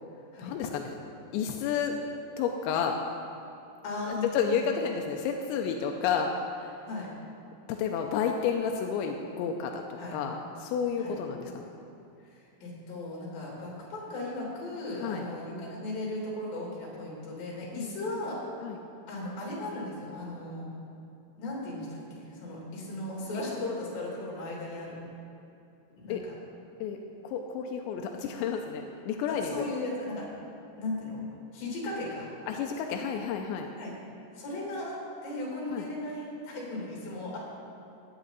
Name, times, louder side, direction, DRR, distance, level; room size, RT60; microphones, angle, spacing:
voice 1, 0.4-0.9 1.3-2.0 2.4-3.0 4.1-6.3 6.6-6.7 7.7-9.8 10.1-11.7 14.9-15.3 17.7-18.2 18.6-18.8 23.3-23.4 26.1-26.2 26.8-27.0 27.2-29.6 32.5-33.7 35.7-35.9, left 7 dB, 85° left, 3 dB, 2.9 m, -31 dB
voice 2, 3.8-4.6 6.9-7.1 10.0-10.2 11.0-11.2 12.3-18.4 19.1-20.7 21.4-25.0 26.0-26.3 29.3-30.3 30.8-31.2 31.5-32.3 33.8-33.9 34.4-37.4, left 2 dB, 55° left, -4 dB, 4.3 m, -36 dB
16.5 x 10.0 x 4.0 m, 2.7 s
omnidirectional pair, 5.2 m